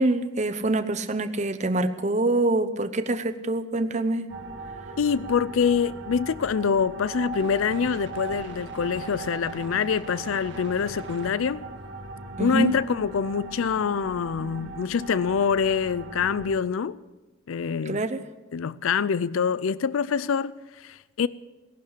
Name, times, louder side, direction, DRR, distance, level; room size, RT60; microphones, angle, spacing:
voice 1, 0.0-4.3 12.4-12.7 17.9-18.2, right 2 dB, 35° right, 0.8 m, -25 dB
sound 1, 4.3-16.5, right 3 dB, 65° right, 1.8 m, -39 dB
voice 2, 5.0-11.6 12.4-17.0 17.5-18.0 18.5-21.3, left 6 dB, 85° left, 0.4 m, -25 dB
18.0 x 11.5 x 6.7 m
head